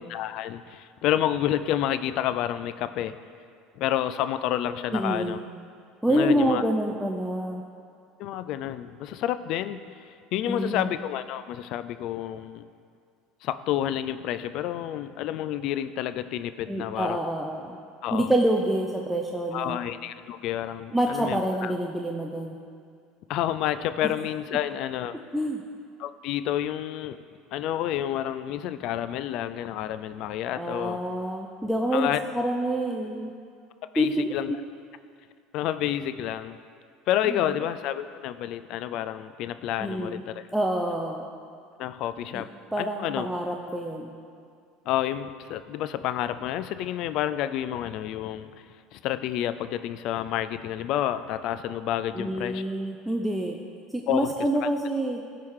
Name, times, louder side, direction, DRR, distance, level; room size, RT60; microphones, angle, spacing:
voice 1, 0.0-3.2 3.8-5.4 6.1-6.6 8.2-9.8 10.3-12.7 13.4-17.2 18.0-18.3 19.5-21.7 23.3-25.1 26.0-27.2 27.5-31.0 31.9-32.2 33.9-34.5 35.5-36.6 37.1-40.4 41.8-42.5 42.8-43.3 44.9-48.5 48.9-52.6 54.1-54.3, left 11 dB, 60° left, 13 dB, 0.3 m, -29 dB
voice 2, 4.9-5.4 6.0-7.6 10.4-10.9 16.7-17.8 18.1-19.8 20.9-22.6 24.0-24.1 25.3-25.6 30.6-33.3 34.0-34.6 37.3-37.5 39.8-40.2 40.5-41.3 42.3-42.4 42.7-44.1 52.1-53.6 53.9-55.2, right 1 dB, 5° right, 0 dB, 0.5 m, -27 dB
12.0 x 4.7 x 3.7 m, 2.2 s
supercardioid pair, 110°, 0 cm